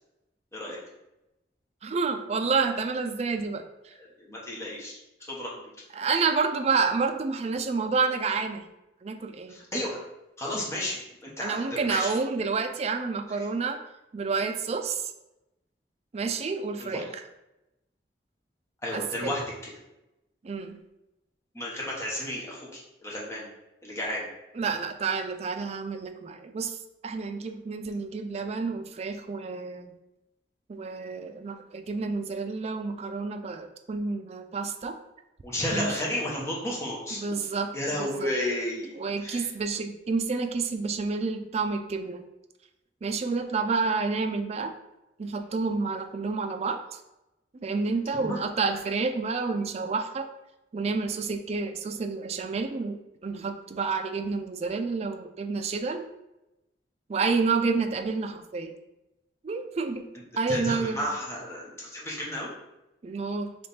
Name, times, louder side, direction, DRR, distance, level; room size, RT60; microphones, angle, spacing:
voice 1, 1.8-3.9 6.0-8.7 9.0-9.6 11.4-13.8 14.1-15.1 16.1-17.1 18.9-19.3 20.4-20.8 24.6-26.8 27.0-29.9 30.7-35.0 35.7-35.9 37.2-38.3 39.0-42.2 43.0-44.7 45.2-47.0 47.6-50.3 50.7-56.0 57.1-58.7 59.4-60.1 60.4-61.1 63.0-63.5, right 4 dB, 35° right, 7 dB, 0.3 m, -29 dB
voice 2, 4.0-5.5 9.5-10.0 10.4-12.1 13.3-13.4 16.8-17.1 18.8-19.7 21.5-23.5 23.8-24.3 35.4-37.5 37.7-38.9 39.2-39.5 48.2-48.4 60.5-62.5, left 1 dB, 15° left, -4 dB, 1.0 m, -33 dB
3.5 x 3.2 x 4.1 m, 0.94 s
head